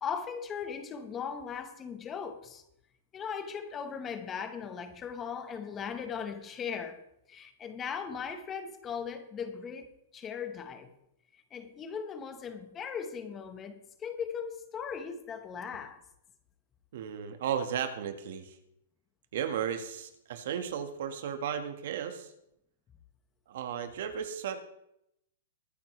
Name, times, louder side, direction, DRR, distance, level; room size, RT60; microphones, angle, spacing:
voice 1, 0.0-2.6 3.1-7.0 7.3-10.9 11.3-16.0, left 6 dB, 20° left, 1.3 m, -38 dB
voice 2, 16.9-18.6 19.3-22.3 23.5-24.6, right 8 dB, 65° right, 1.8 m, -34 dB
22.5 x 9.4 x 3.4 m
hypercardioid pair, 150°, 0 cm